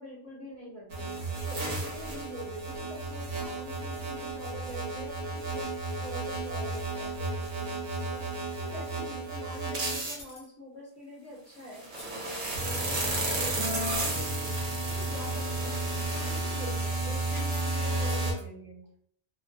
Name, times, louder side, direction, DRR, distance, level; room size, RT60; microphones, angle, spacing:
voice 1, 0.0-8.3 8.6-14.5 14.8-15.8 16.1-19.1, equal, 15° left, -6 dB, 0.8 m, -45 dB
sound 1, 0.9-10.1 11.6-18.3, right 2 dB, 50° right, 0.8 m, -32 dB
sound 2, 10.2-10.5 11.8-12.1 12.9-13.3 13.8-14.2 14.5-14.6 15.5-15.6 17.2-17.8 18.1-18.4, left 1 dB, 50° left, 0.8 m, -49 dB
2.4 x 2.2 x 2.5 m, 0.65 s
omnidirectional pair, 1.2 m